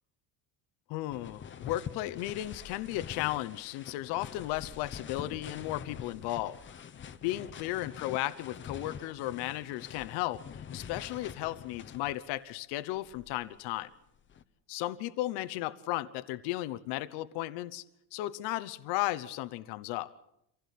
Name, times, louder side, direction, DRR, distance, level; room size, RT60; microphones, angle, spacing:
voice 1, 0.9-6.6 7.2-13.9 14.7-17.8 18.1-20.1, left 16 dB, 80° left, 13 dB, 1.0 m, -35 dB
sound 1, 1.1-12.4 13.0-14.4, left 7 dB, 30° left, 1.1 m, -45 dB
26.5 x 16.0 x 8.4 m, 0.79 s
cardioid pair, 135°, 40 cm